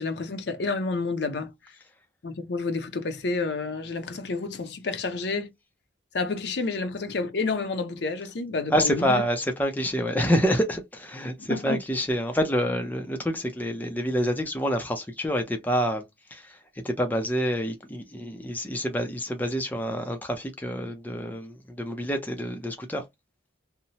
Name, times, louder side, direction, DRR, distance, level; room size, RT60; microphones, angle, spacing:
voice 1, 0.0-1.5 2.2-5.5 6.1-9.2 11.5-11.8, left 3 dB, 60° left, 0.5 m, -29 dB
voice 2, 8.7-16.0 16.3-23.1, equal, 10° left, 0.4 m, -27 dB
2.8 x 2.0 x 2.7 m
head